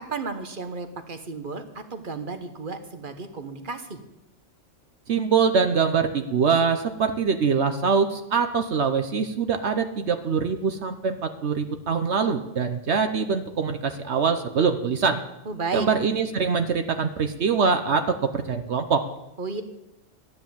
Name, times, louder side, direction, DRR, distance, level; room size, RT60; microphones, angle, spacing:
voice 1, 0.0-4.0 15.4-15.9 19.4-19.6, right 4 dB, 40° right, 7 dB, 1.3 m, -33 dB
voice 2, 5.1-15.2 15.7-19.0, right 5 dB, 60° right, 8 dB, 1.1 m, -23 dB
13.0 x 10.0 x 7.1 m, 0.91 s
omnidirectional pair, 1.3 m